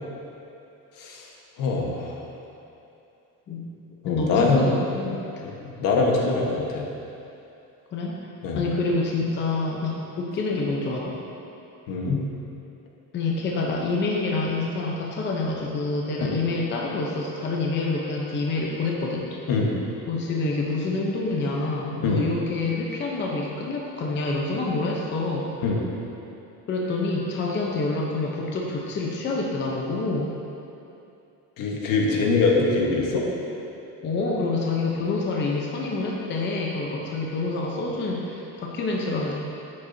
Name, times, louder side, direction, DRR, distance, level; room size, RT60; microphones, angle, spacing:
voice 1, 1.0-1.3 1.6-2.1 4.0-4.6 5.4-6.9 8.4-8.6 11.9-12.2 16.2-16.4 19.5-19.7 22.0-22.2 25.6-25.8 31.6-33.3, left 3 dB, 70° left, -1 dB, 1.3 m, -23 dB
voice 2, 4.1-5.3 7.9-8.1 8.5-11.2 13.1-19.4 20.1-25.5 26.7-30.3 34.0-39.3, left 3 dB, 30° left, -2 dB, 0.8 m, -27 dB
11.0 x 8.5 x 2.7 m, 2.8 s
cardioid pair, 180°, 34 cm